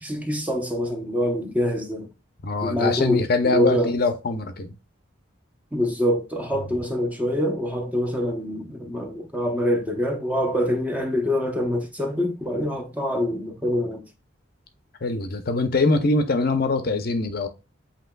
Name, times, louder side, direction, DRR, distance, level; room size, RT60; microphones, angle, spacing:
voice 1, 0.0-2.1 2.6-3.9 5.7-14.0, equal, 10° right, 0.7 m, -25 dB
voice 2, 2.4-4.7 15.0-17.5, left 3 dB, 50° left, 0.6 m, -23 dB
7.8 x 2.9 x 2.2 m
head